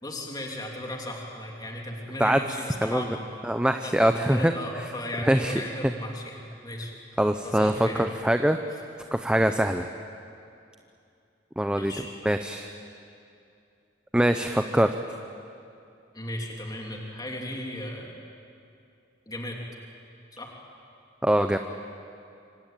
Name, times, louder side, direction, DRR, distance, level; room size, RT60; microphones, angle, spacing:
voice 1, 0.0-3.2 3.8-6.9 7.4-8.1 11.8-12.1 16.1-18.1 19.3-19.6 20.3-20.5, left 1 dB, 20° left, 0 dB, 3.1 m, -36 dB
voice 2, 3.4-4.5 5.2-5.5 7.2-8.6 9.1-9.9 11.6-11.9 12.3-12.7 14.1-14.9 21.2-21.6, right 1 dB, 5° right, 7 dB, 0.7 m, -23 dB
25.5 x 25.5 x 9.1 m, 2.5 s
head